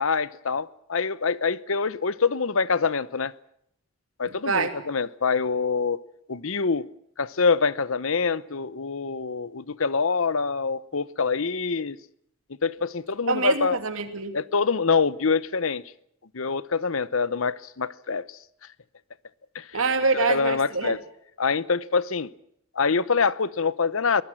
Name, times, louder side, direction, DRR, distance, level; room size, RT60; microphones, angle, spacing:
voice 1, 0.0-3.3 4.2-6.0 6.3-6.9 7.2-12.0 12.6-13.8 14.3-15.8 16.3-18.4 19.5-19.8 20.3-21.0 21.4-22.3 22.7-24.2, left 5 dB, 75° left, 0.9 m, -25 dB
voice 2, 13.3-14.3 19.7-21.0, right 4 dB, 75° right, 2.8 m, -25 dB
23.5 x 19.5 x 7.5 m
head